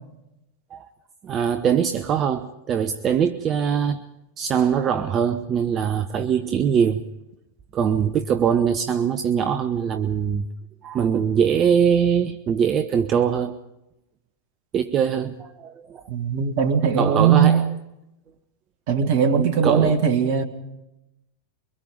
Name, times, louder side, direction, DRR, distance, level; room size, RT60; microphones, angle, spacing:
voice 1, 1.2-4.0 4.4-7.0 7.7-10.5 10.8-13.6 14.7-16.0 17.0-17.7 19.3-19.9, right 7 dB, 30° right, 0.8 m, -22 dB
voice 2, 16.1-17.6 18.9-20.4, right 7 dB, 50° right, 1.8 m, -19 dB
23.5 x 23.0 x 5.3 m
figure-of-eight pair, 90°, 0 cm